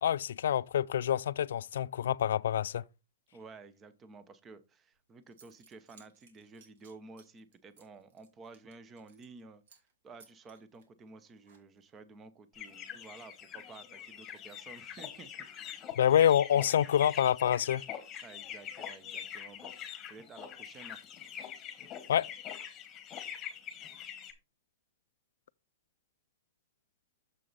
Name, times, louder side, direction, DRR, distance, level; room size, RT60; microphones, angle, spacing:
voice 1, 0.0-2.8 16.0-17.8 22.1-22.3, left 10 dB, 80° left, 0.3 m, -27 dB
voice 2, 3.3-15.3 18.2-21.0, right 4 dB, 20° right, 0.7 m, -52 dB
Zipper (clothing) / Coin (dropping), 4.9-5.0 5.3-9.4 9.7-9.9 10.2-12.0, right 5 dB, 70° right, 2.3 m, -63 dB
sound 1, 12.5-24.3, left 9 dB, 20° left, 1.3 m, -44 dB
7.0 x 6.2 x 4.0 m
supercardioid pair, 160°, 0 cm